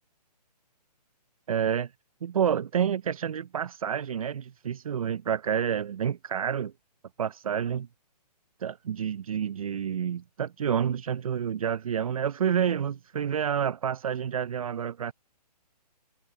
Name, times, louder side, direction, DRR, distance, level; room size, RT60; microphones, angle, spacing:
voice 1, 1.5-1.9 2.2-6.7 7.2-7.9 8.6-15.1, right 8 dB, 55° right, 0.5 m, -29 dB
hypercardioid pair, 170°, 21 cm